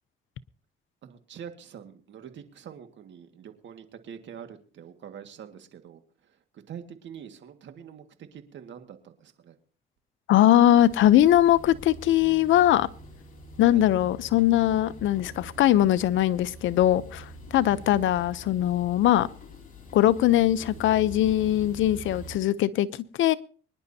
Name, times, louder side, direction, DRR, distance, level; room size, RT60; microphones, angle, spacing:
voice 1, 1.0-6.0 6.5-9.6 13.7-13.9 17.7-17.8, right 8 dB, 65° right, 1.9 m, -45 dB
voice 2, 10.3-12.9 13.6-19.3 19.9-23.3, left 13 dB, 80° left, 0.7 m, -21 dB
sound 1, 10.8-22.4, right 1 dB, 45° left, 4.3 m, -45 dB
24.0 x 10.5 x 2.8 m
cardioid pair, 90°, 20 cm